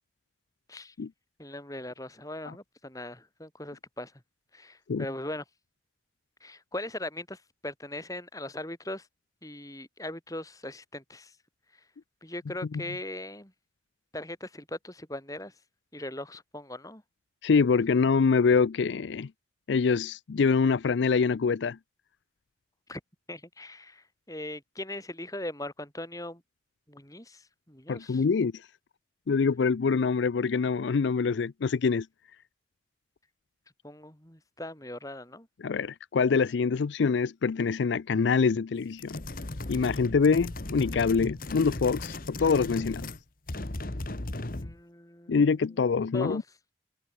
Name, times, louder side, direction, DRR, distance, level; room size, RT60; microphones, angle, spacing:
voice 1, 1.4-4.1 4.5-5.4 6.4-9.1 9.4-11.3 12.2-13.5 14.1-15.5 15.9-17.0 22.9-23.0 23.3-26.4 26.9-28.2 33.8-35.5 44.6-45.4 46.1-46.4, left 1 dB, 20° left, 7.2 m, -39 dB
voice 2, 17.4-19.3 19.7-21.8 27.9-28.5 29.3-32.1 35.6-39.2 39.7-43.1 45.3-46.4, left 5 dB, 75° left, 0.4 m, -25 dB
sound 1, 39.0-43.2 43.5-44.8, left 2 dB, 50° left, 1.5 m, -36 dB
head